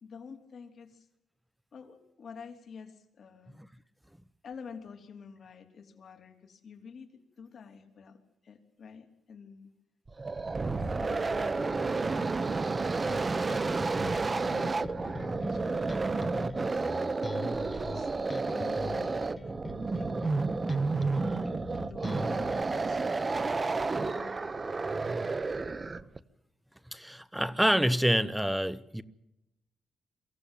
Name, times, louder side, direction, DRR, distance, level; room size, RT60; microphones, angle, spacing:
voice 1, 0.0-1.1 1.7-3.5 4.4-9.7 10.8-12.5 14.3-16.6 17.4-19.5 19.9-20.2 21.2-22.3 22.7-23.0 23.6-23.7 24.0-24.9, left 6 dB, 60° left, 3.3 m, -49 dB
sound 1, 10.1-26.2, right 3 dB, 30° right, 1.0 m, -31 dB
Bass guitar, 13.0-22.6, left 3 dB, 30° left, 1.0 m, -42 dB
voice 2, 26.9-29.0, equal, 5° right, 1.0 m, -27 dB
24.0 x 15.0 x 9.1 m
cardioid pair, 90°, 0 cm